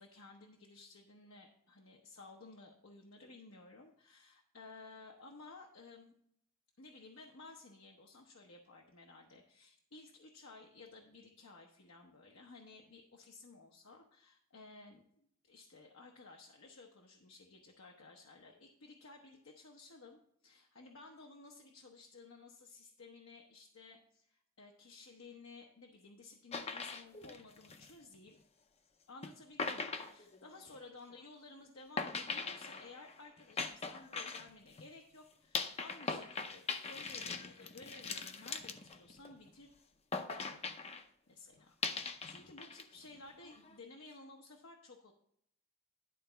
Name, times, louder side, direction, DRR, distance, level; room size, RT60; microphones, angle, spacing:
voice 1, 0.0-6.1 6.8-28.4 29.1-39.7 40.3-40.6 41.3-45.1, left 3 dB, 75° left, 0 dB, 0.9 m, -56 dB
sound 1, 26.5-28.3 29.2-29.3 29.6-30.9 32.0-34.9 35.5-39.5 40.1-41.0 41.8-42.8 43.1-43.7, left 4 dB, 30° left, 0.6 m, -41 dB
11.0 x 4.0 x 5.6 m, 0.70 s
head